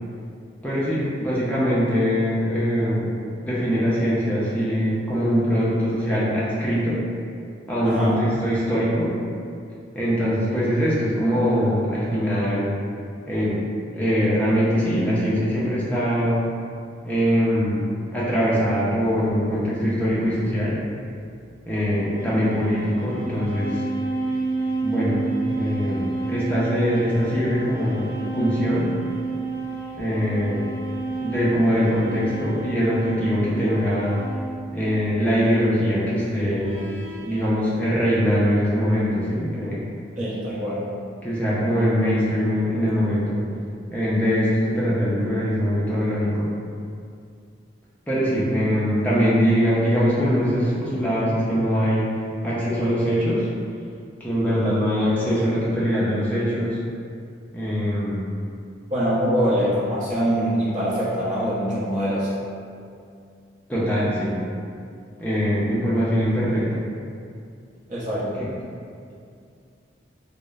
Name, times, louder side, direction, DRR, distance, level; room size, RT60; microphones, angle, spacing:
voice 1, 0.6-3.1 3.4-7.0 7.7-9.1 9.9-12.7 13.3-13.6 13.9-16.4 17.0-17.8 18.1-20.8 21.7-23.9 24.8-25.2 25.6-28.9 30.0-30.7 31.2-34.2 34.7-36.9 37.2-39.8 41.2-43.4 43.9-46.5 48.1-53.5 54.2-56.8 57.5-58.3 63.7-64.4 65.2-66.8 68.3-68.5, equal, 10° left, -8 dB, 0.5 m, -22 dB
voice 2, 7.8-8.2 40.2-40.8 58.9-62.3 67.9-68.4, equal, 45° right, -8 dB, 0.6 m, -24 dB
sound 1, 19.2-19.4 21.8-35.0 36.6-37.4, right 3 dB, 80° right, 0.4 m, -31 dB
2.8 x 2.0 x 2.3 m, 2.4 s
head